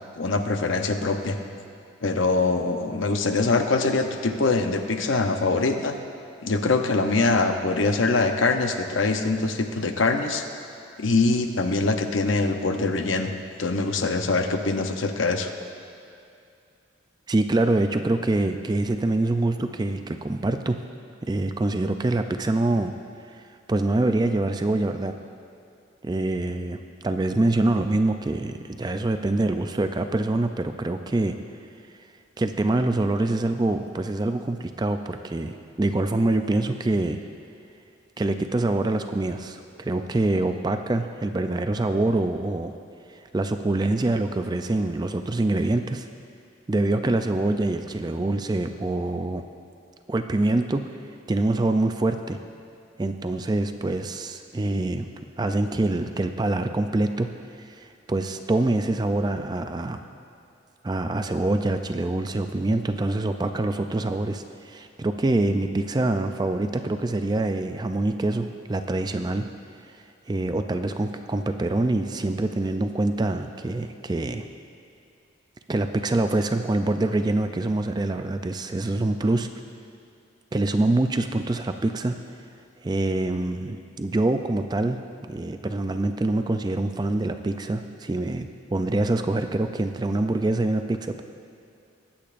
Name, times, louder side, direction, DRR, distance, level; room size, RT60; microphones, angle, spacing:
voice 1, 0.1-1.4 2.0-6.0 6.4-10.4 11.0-13.3 13.6-15.5, left 3 dB, 75° left, 6 dB, 0.7 m, -23 dB
voice 2, 17.3-20.8 21.3-22.9 23.7-25.1 26.0-31.4 32.4-37.2 38.2-42.7 43.3-46.1 46.7-49.4 50.1-50.8 51.3-52.4 53.0-55.1 55.4-57.3 57.6-60.0 60.8-69.5 70.3-74.4 75.7-79.5 80.5-82.2 82.8-85.0 85.3-91.2, right 2 dB, 20° right, 7 dB, 0.3 m, -25 dB
22.0 x 8.7 x 2.5 m, 2.5 s
head